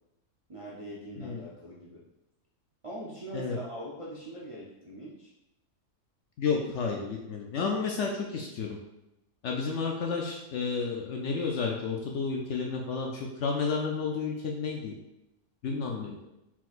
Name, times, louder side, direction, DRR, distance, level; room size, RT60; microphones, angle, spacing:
voice 1, 0.5-2.0 2.8-5.3, right 1 dB, 30° right, -6 dB, 0.6 m, -42 dB
voice 2, 6.4-8.8 9.4-14.9 15.6-16.3, left 5 dB, 65° left, 0 dB, 0.8 m, -31 dB
4.4 x 3.9 x 2.5 m, 0.91 s
omnidirectional pair, 1.5 m